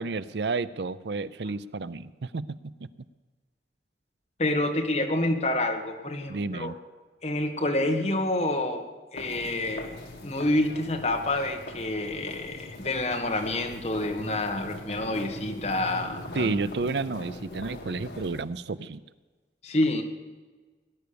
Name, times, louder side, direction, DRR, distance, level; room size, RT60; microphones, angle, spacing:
voice 1, 0.0-2.6 6.3-6.8 16.3-19.0, right 3 dB, 80° right, 16 dB, 0.6 m, -31 dB
voice 2, 4.4-6.7 7.2-16.6 19.6-20.0, left 1 dB, 40° left, 3 dB, 1.7 m, -28 dB
sound 1, 9.1-18.4, left 1 dB, 70° left, 2.0 m, -41 dB
18.5 x 10.5 x 6.9 m, 1.3 s
head